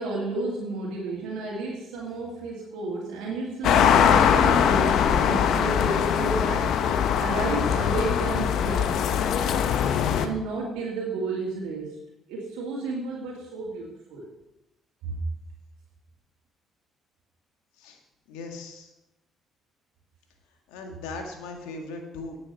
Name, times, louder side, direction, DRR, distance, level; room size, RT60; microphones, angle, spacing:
voice 1, 0.0-6.7 7.2-9.0 10.2-12.0 12.3-14.3 15.0-15.2, right 3 dB, 85° right, -4 dB, 2.0 m, -32 dB
sound 1, 3.6-10.3, left 8 dB, 70° left, 0.8 m, -22 dB
voice 2, 18.3-18.9 20.7-22.4, left 3 dB, 90° left, 3 dB, 1.8 m, -38 dB
10.0 x 8.4 x 5.4 m, 0.91 s
supercardioid pair, 70°, 0 cm